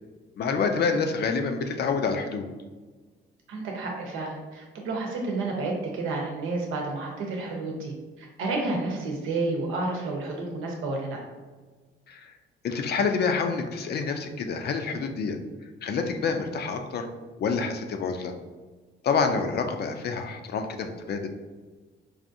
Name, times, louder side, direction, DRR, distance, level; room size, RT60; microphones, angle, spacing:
voice 1, 0.4-2.5 12.1-12.3 12.6-15.4 15.8-17.1 17.4-18.3 19.0-21.3, left 5 dB, 55° left, 6 dB, 0.5 m, -27 dB
voice 2, 3.5-11.2, right 3 dB, 90° right, 0 dB, 0.8 m, -30 dB
4.8 x 2.5 x 2.6 m, 1.4 s
cardioid pair, 90°, 20 cm